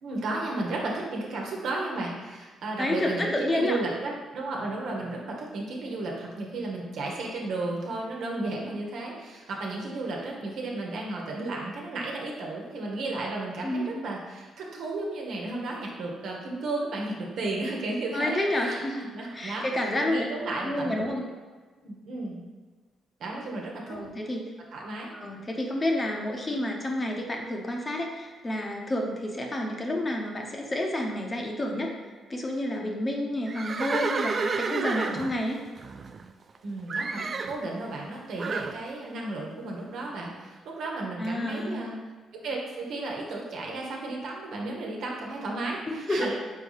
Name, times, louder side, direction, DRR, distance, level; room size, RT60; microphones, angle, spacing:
voice 1, 0.0-19.6 20.0-21.1 21.8-22.4 23.2-24.0 24.7-25.1 36.6-42.1 42.4-46.3, right 2 dB, 70° right, -1 dB, 1.3 m, -33 dB
voice 2, 2.8-3.8 13.6-14.1 18.1-19.0 19.3-20.2 20.6-21.2 23.9-24.5 25.1-31.9 32.3-35.6 41.2-41.8 45.9-46.3, left 1 dB, 25° left, 1 dB, 1.0 m, -29 dB
Livestock farm animals working animals, 33.5-36.6 36.9-37.6 38.4-38.8, right 4 dB, 40° right, 0.3 m, -30 dB
4.7 x 4.2 x 4.9 m, 1.4 s
cardioid pair, 90°, 0 cm